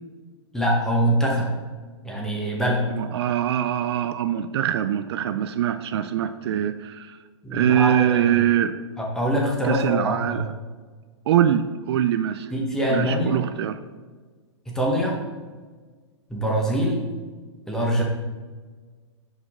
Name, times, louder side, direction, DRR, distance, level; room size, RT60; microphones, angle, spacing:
voice 1, 0.5-1.5 2.0-2.8 7.4-8.4 9.0-10.5 12.5-13.4 14.7-15.1 16.3-17.1 17.7-18.0, equal, 5° left, -2 dB, 1.0 m, -24 dB
voice 2, 2.9-7.2 7.5-8.7 9.6-10.4 11.3-12.5 12.9-13.8, right 10 dB, 60° right, 10 dB, 0.4 m, -23 dB
6.3 x 5.0 x 3.6 m, 1.4 s
hypercardioid pair, 150°, 15 cm